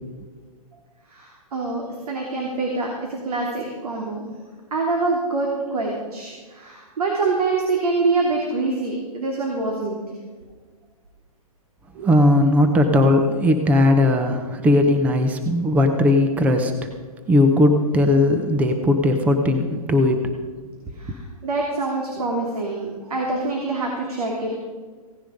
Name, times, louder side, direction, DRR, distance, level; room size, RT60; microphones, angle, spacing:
voice 1, 1.1-2.9 3.2-4.3 4.7-10.0 11.9-12.1 21.0-24.6, right 3 dB, 75° right, -1 dB, 3.1 m, -25 dB
voice 2, 12.0-16.9 17.3-20.3, left 1 dB, 5° right, 6 dB, 0.7 m, -18 dB
17.0 x 10.0 x 5.1 m, 1.4 s
hypercardioid pair, 155°, 19 cm